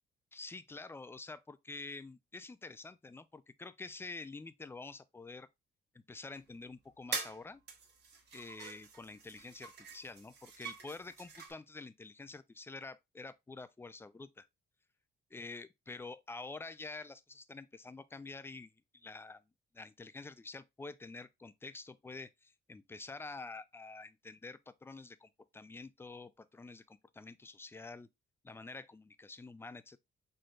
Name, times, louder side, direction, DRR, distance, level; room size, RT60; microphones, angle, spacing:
voice 1, 0.3-5.5 5.9-7.6 8.3-14.5 15.3-19.4 19.7-28.1 28.4-30.0, left 3 dB, 10° left, 0.3 m, -48 dB
sound 1, 6.5-6.6 7.1-7.4 7.7-11.5, right 5 dB, 55° right, 1.2 m, -44 dB
4.3 x 3.1 x 2.5 m
cardioid pair, 90°, 20 cm